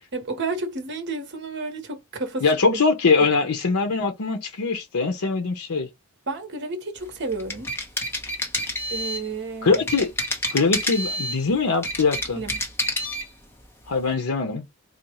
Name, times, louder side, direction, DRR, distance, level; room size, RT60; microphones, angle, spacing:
voice 1, 0.1-2.5 6.3-7.7 8.9-9.8 12.3-12.6, right 3 dB, 50° right, 1.0 m, -31 dB
voice 2, 2.4-5.9 9.6-10.1 10.5-12.4 13.9-14.6, left 4 dB, 80° left, 0.7 m, -22 dB
sound 1, 7.3-9.3 9.7-11.4 11.7-13.3, left 1 dB, 10° left, 0.9 m, -28 dB
4.3 x 2.3 x 2.9 m
head